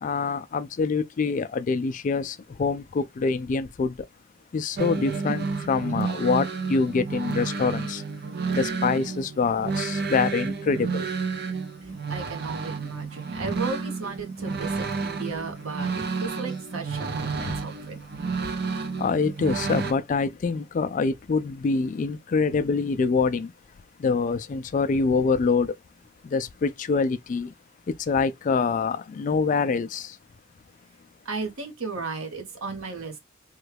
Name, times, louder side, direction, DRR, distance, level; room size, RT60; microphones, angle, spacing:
voice 1, 0.0-3.9 4.5-8.0 8.5-11.0 17.4-17.6 19.0-23.5 24.0-25.7 26.2-27.5 28.1-30.1, left 4 dB, 40° left, 0.3 m, -25 dB
sound 1, 4.8-19.9, right 4 dB, 50° right, 0.5 m, -31 dB
voice 2, 12.1-18.0 31.2-33.2, right 4 dB, 85° right, 1.0 m, -34 dB
3.1 x 2.3 x 3.2 m
head